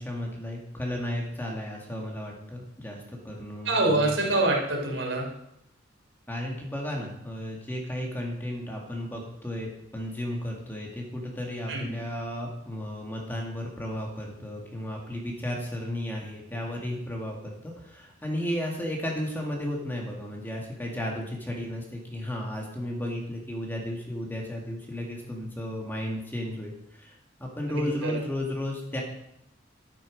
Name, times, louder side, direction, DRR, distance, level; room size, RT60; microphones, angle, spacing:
voice 1, 0.0-4.2 6.3-17.4 17.6-27.1 27.4-29.0, left 1 dB, 10° left, -1 dB, 2.1 m, -34 dB
voice 2, 3.7-5.3 11.7-11.9 27.7-28.1, right 2 dB, 90° right, -1 dB, 3.4 m, -25 dB
12.0 x 9.0 x 5.2 m, 0.79 s
head